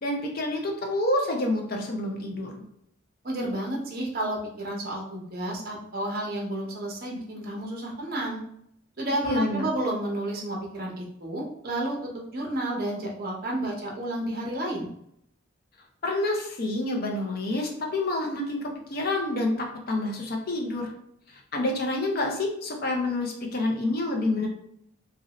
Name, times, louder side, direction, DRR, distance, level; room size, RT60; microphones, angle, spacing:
voice 1, 0.0-2.5 9.2-9.7 16.0-20.9 21.5-24.5, left 2 dB, 45° left, 2 dB, 0.6 m, -28 dB
voice 2, 3.2-8.4 9.0-14.9, right 1 dB, 45° right, -1 dB, 0.8 m, -31 dB
3.0 x 2.6 x 2.9 m, 0.73 s
head